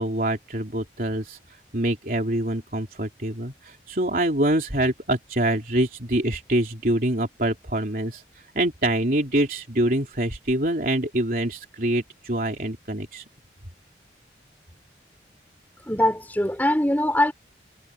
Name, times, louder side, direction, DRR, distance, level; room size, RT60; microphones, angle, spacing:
voice 1, 0.0-1.4 1.7-8.2 8.6-13.2, right 1 dB, 50° right, 3.7 m, -25 dB
voice 2, 15.9-17.3, left 1 dB, 10° left, 4.3 m, -22 dB
head